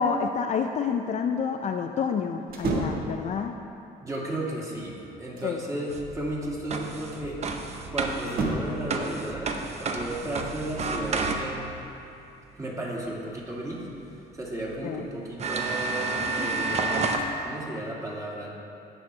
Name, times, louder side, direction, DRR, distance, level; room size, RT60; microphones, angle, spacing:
voice 1, 0.0-3.6 5.4-5.6 14.8-15.0, left 6 dB, 45° left, 5 dB, 0.5 m, -28 dB
sound 1, 2.5-3.1 4.8-5.6 8.2-8.9, right 3 dB, 60° right, 1.5 m, -30 dB
voice 2, 4.0-7.4 7.9-11.7 12.5-13.9 14.3-17.0 17.4-18.5, right 1 dB, 20° right, -4 dB, 2.2 m, -34 dB
sound 2, 5.9-11.8 13.9-14.0 14.7-14.8 15.4-17.3, right 3 dB, 40° right, 0.8 m, -30 dB
17.0 x 6.1 x 3.3 m, 2.6 s
cardioid pair, 110°, 17 cm